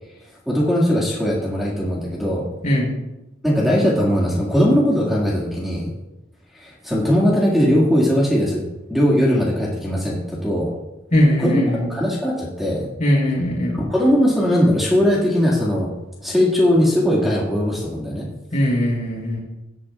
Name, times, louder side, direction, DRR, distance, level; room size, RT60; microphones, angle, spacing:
voice 1, 0.5-2.4 3.4-5.9 6.5-8.6 8.9-10.7 11.4-12.9 13.7-15.9 16.2-18.3, equal, ahead, -6 dB, 2.0 m, -19 dB
voice 2, 11.1-11.9 13.0-13.8 18.5-19.4, equal, 40° left, -3 dB, 4.4 m, -19 dB
17.5 x 8.9 x 2.4 m, 0.96 s
head